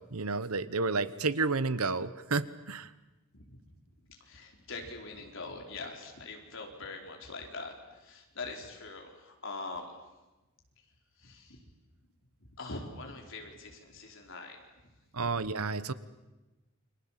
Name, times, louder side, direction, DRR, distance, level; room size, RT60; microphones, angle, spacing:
voice 1, 0.0-2.9 15.1-15.9, right 3 dB, 85° right, 15 dB, 1.2 m, -31 dB
voice 2, 4.3-7.7 8.0-9.8 11.2-11.6 12.6-14.6, left 3 dB, 60° left, 2 dB, 4.6 m, -43 dB
29.0 x 24.0 x 7.6 m, 1.1 s
head